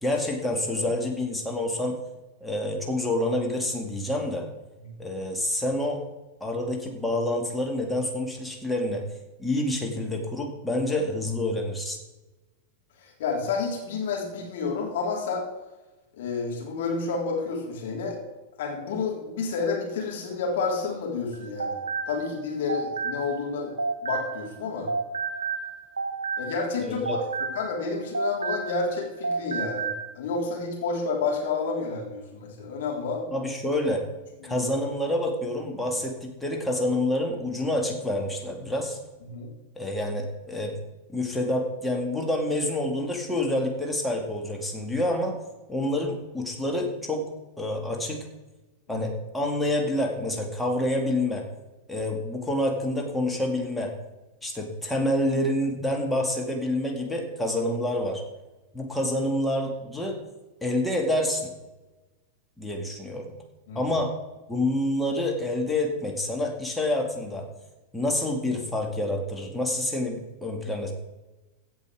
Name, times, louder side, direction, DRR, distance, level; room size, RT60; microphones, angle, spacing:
voice 1, 0.0-2.0 2.4-4.5 5.0-6.0 6.4-9.0 9.4-12.0 26.8-27.2 33.3-34.0 34.4-39.0 39.8-40.8 41.1-45.4 45.7-47.2 47.6-48.2 48.9-51.4 51.9-53.9 54.4-58.2 58.7-60.2 60.6-61.5 62.6-63.3 63.7-64.1 64.5-67.4 67.9-70.9, left 1 dB, 5° left, 0 dB, 2.2 m, -27 dB
voice 2, 13.0-15.4 16.2-18.2 18.6-21.8 22.1-23.7 24.0-24.9 26.4-33.2 34.4-34.6 39.3-39.5 48.9-49.1 63.7-63.8, left 4 dB, 60° left, -2 dB, 3.7 m, -30 dB
sound 1, 21.3-24.6 24.9-29.0 29.2-30.1, right 4 dB, 80° right, 0.8 m, -31 dB
16.5 x 5.5 x 4.9 m, 1.1 s
figure-of-eight pair, 95°, 0 cm